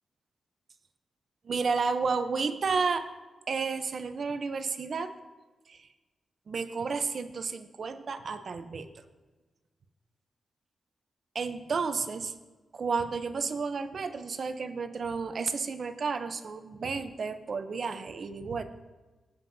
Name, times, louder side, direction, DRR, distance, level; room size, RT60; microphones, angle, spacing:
voice 1, 1.4-3.0 3.5-5.1 5.7-5.9 6.5-8.9 11.3-12.3 12.7-18.6, right 4 dB, 55° right, 9 dB, 0.7 m, -31 dB
16.0 x 7.5 x 2.7 m, 1.3 s
wide cardioid pair, 105°, 0 cm